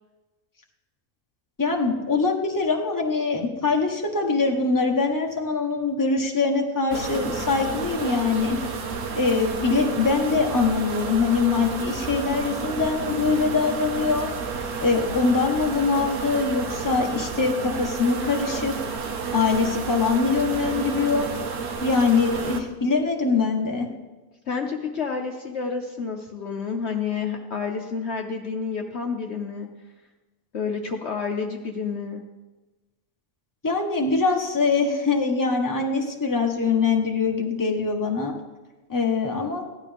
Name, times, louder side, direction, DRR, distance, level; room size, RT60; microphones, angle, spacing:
voice 1, 1.6-8.6 9.1-14.3 14.8-18.7 19.3-21.3 21.8-23.9 33.6-38.3 38.9-39.6, left 4 dB, 15° left, 1 dB, 1.3 m, -23 dB
sound 1, 6.9-22.6, right 5 dB, 60° right, 1.3 m, -31 dB
voice 2, 24.5-29.7 30.5-32.2, left 5 dB, 55° left, 2 dB, 1.1 m, -29 dB
16.5 x 12.0 x 3.5 m, 1.2 s
omnidirectional pair, 1.5 m